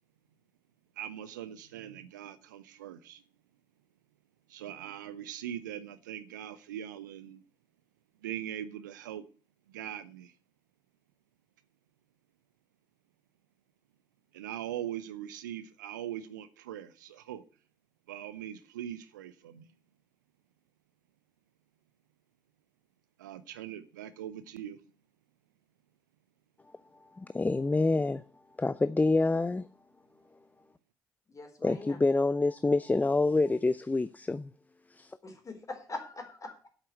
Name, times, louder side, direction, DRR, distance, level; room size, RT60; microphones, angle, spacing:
voice 1, 1.0-3.2 4.5-7.4 8.2-9.2 9.7-10.3 14.3-17.4 18.1-19.7 23.2-24.8, right 11 dB, 80° right, 0.6 m, -41 dB
voice 2, 27.1-28.2 28.6-29.7 31.6-34.5 34.9-35.2, left 3 dB, 15° left, 0.5 m, -27 dB
voice 3, 31.3-32.0 35.2-36.7, left 3 dB, 35° left, 4.0 m, -42 dB
8.2 x 7.6 x 8.1 m
figure-of-eight pair, 45°, 10 cm